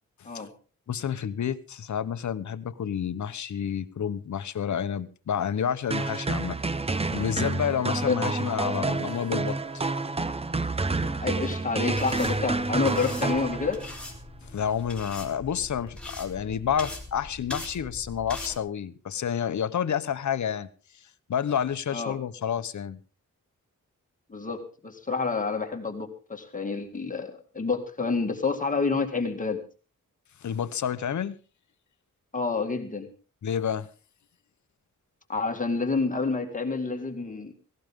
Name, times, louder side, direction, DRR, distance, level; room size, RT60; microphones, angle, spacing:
voice 1, 0.9-6.6 7.1-9.6 14.5-20.7 21.3-23.0 30.4-31.4 33.4-33.9, left 8 dB, 60° left, 13 dB, 1.0 m, -29 dB
sound 1, 5.9-14.0, right 3 dB, 20° right, 0.7 m, -29 dB
voice 2, 7.9-8.3 11.0-13.8 21.9-22.2 24.3-29.6 32.3-33.1 35.3-37.5, left 4 dB, 25° left, 4 dB, 2.1 m, -28 dB
sound 2, 12.0-18.6, left 2 dB, 5° left, 3.4 m, -41 dB
17.5 x 16.5 x 3.7 m, 0.35 s
wide cardioid pair, 170°, 32 cm